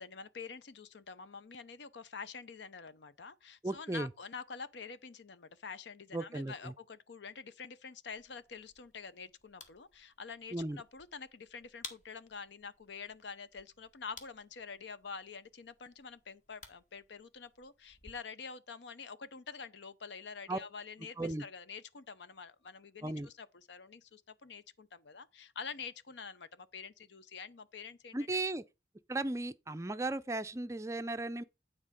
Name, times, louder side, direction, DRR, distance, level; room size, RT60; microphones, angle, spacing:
voice 1, 0.0-28.4, left 5 dB, 75° left, 0.7 m, -47 dB
voice 2, 3.6-4.1 6.1-6.7 10.5-10.8 20.5-20.6 21.2-21.4 23.0-23.3 28.1-28.6 29.1-31.4, right 2 dB, 15° right, 0.4 m, -36 dB
sound 1, 8.1-18.1, left 4 dB, 40° left, 1.5 m, -56 dB
9.7 x 4.3 x 5.0 m
head